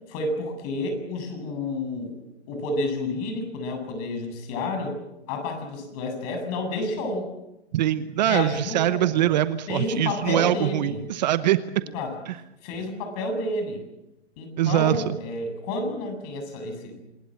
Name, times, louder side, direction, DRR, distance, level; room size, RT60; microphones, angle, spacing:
voice 1, 0.1-5.0 5.3-7.3 8.3-9.3 9.7-11.0 11.9-12.1 12.6-13.8 14.4-17.0, left 2 dB, 35° left, 6 dB, 7.5 m, -30 dB
voice 2, 7.7-11.6 12.3-12.4 14.6-15.1, right 13 dB, 40° right, 13 dB, 1.0 m, -23 dB
27.0 x 20.0 x 7.6 m, 0.94 s
hypercardioid pair, 145°, 33 cm